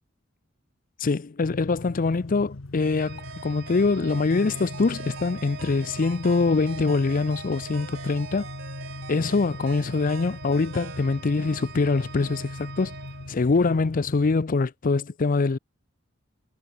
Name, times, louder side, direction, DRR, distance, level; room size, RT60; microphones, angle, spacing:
voice 1, 1.0-8.5 9.1-13.0 13.3-15.6, left 3 dB, 45° left, 0.5 m, -24 dB
sound 1, 1.4-14.4, left 2 dB, 80° left, 1.2 m, -40 dB
sound 2, 2.8-11.1, right 5 dB, 75° right, 1.5 m, -45 dB
Organ, 3.0-13.8, right 6 dB, 55° right, 1.5 m, -44 dB
head